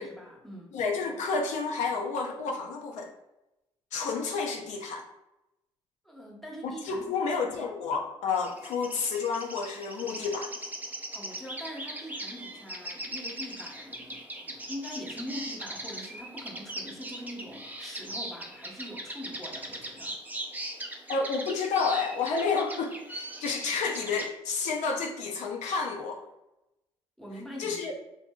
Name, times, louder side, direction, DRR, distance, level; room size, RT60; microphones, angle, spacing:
voice 1, 0.0-0.7 6.0-7.3 11.1-20.2 27.2-27.9, equal, ahead, -2 dB, 0.8 m, -43 dB
voice 2, 0.7-3.1 3.9-5.0 6.6-10.5 21.1-26.2 27.6-27.9, left 4 dB, 70° left, 2 dB, 0.4 m, -30 dB
sound 1, 8.4-24.3, right 1 dB, 15° right, 0.4 m, -40 dB
2.6 x 2.5 x 2.2 m, 0.93 s
supercardioid pair, 55°, 13 cm